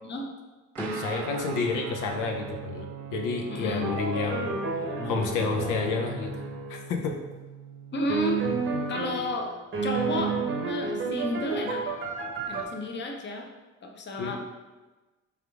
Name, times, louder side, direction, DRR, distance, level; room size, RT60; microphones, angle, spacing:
Guitar, 0.7-8.8, right 8 dB, 75° right, 0.5 m, -42 dB
sound 1, 0.8-6.6 7.2-7.6, right 1 dB, 5° left, 0.7 m, -43 dB
voice 1, 0.9-7.1 14.2-14.4, left 4 dB, 85° left, 3 dB, 0.6 m, -30 dB
voice 2, 3.5-3.9 7.9-8.4 8.9-9.5 9.8-10.4 10.6-11.8 12.5-13.5 13.8-14.4, left 1 dB, 40° left, 2 dB, 0.7 m, -31 dB
sound 2, 3.8-6.8 8.1-9.3 9.7-12.6, right 4 dB, 45° right, 0.8 m, -31 dB
3.5 x 3.4 x 3.5 m, 1.2 s
cardioid pair, 90°, 30 cm